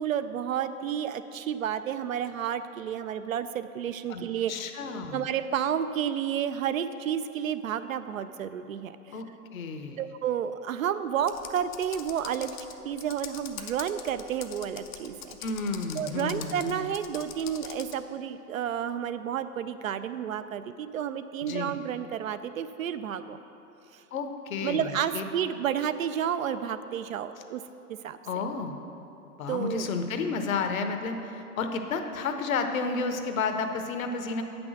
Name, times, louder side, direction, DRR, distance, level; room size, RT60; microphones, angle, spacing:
voice 1, 0.0-4.5 5.1-9.0 10.0-12.6 12.8-15.4 15.9-23.4 23.9-24.0 24.6-27.6 28.0-28.2 29.5-29.9, right 9 dB, 60° right, 12 dB, 0.5 m, -31 dB
voice 2, 4.1-5.3 9.1-9.3 9.5-10.0 15.4-16.9 21.4-21.8 24.1-25.2 28.3-28.8 29.4-34.4, left 4 dB, 60° left, 6 dB, 0.9 m, -31 dB
Computer keyboard, 11.2-18.0, left 8 dB, 35° left, 0.5 m, -43 dB
8.7 x 6.1 x 6.3 m, 2.9 s
figure-of-eight pair, 110°, 47 cm